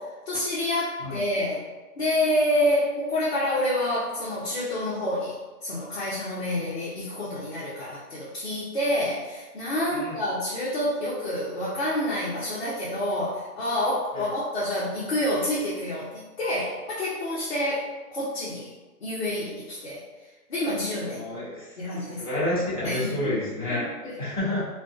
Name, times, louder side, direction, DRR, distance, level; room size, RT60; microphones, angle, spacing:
voice 1, 0.0-1.6 2.0-18.7 19.0-21.2 21.8-22.2 22.8-23.4 23.7-24.1, left 1 dB, 45° left, -8 dB, 0.5 m, -28 dB
voice 2, 21.0-21.8 22.1-22.5 22.8-23.9 24.2-24.6, left 1 dB, 25° right, -11 dB, 0.4 m, -29 dB
2.4 x 2.2 x 2.3 m, 1.2 s
hypercardioid pair, 165°, 47 cm